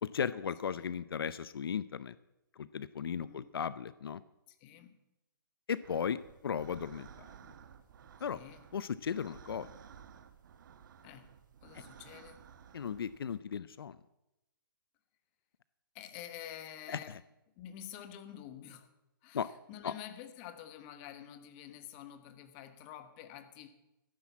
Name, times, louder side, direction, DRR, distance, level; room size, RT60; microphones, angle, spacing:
voice 1, 0.0-2.2 2.6-4.2 5.7-7.3 8.2-8.4 8.7-9.7 11.7-11.8 12.7-14.0 16.9-17.2 19.3-19.5 19.8-19.9, left 7 dB, 85° left, 17 dB, 0.6 m, -36 dB
voice 2, 3.1-3.5 4.5-5.0 8.3-8.7 11.0-11.3 11.6-12.4 15.9-17.2 17.6-18.9 19.2-23.7, left 10 dB, 30° left, 9 dB, 1.3 m, -48 dB
sound 1, 5.8-13.4, right 8 dB, 55° right, 1.3 m, -55 dB
14.0 x 10.0 x 7.3 m, 0.93 s
hypercardioid pair, 155°, 12 cm